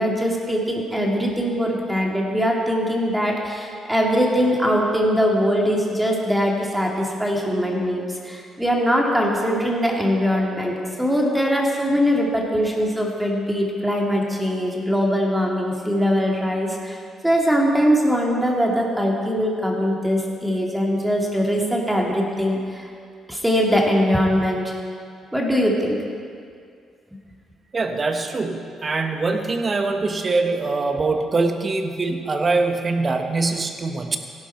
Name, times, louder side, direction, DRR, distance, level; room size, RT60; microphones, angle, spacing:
voice 1, 0.0-22.9 23.3-24.7 25.3-26.0, equal, 5° right, -1 dB, 2.2 m, -21 dB
voice 2, 27.7-34.2, right 3 dB, 35° right, 5 dB, 1.3 m, -23 dB
16.0 x 11.0 x 4.5 m, 2.3 s
cardioid pair, 90°, 0 cm